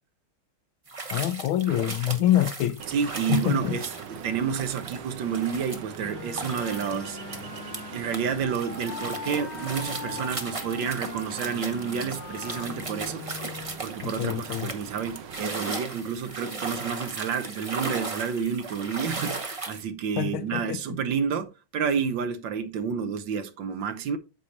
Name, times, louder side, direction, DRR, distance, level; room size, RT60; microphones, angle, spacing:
sound 1, 0.9-8.2 8.5-19.8, right 3 dB, 30° right, 0.6 m, -37 dB
voice 1, 1.1-2.8 3.3-3.8 14.0-14.7 20.2-20.8, left 13 dB, 80° left, 1.5 m, -26 dB
Ocean, 2.8-15.5, right 7 dB, 85° right, 1.8 m, -42 dB
voice 2, 2.9-7.2 7.9-13.2 13.8-24.2, right 7 dB, 70° right, 1.5 m, -30 dB
Wind instrument woodwind instrument, 6.0-13.8, left 6 dB, 60° left, 1.7 m, -41 dB
8.6 x 6.4 x 2.8 m
omnidirectional pair, 2.2 m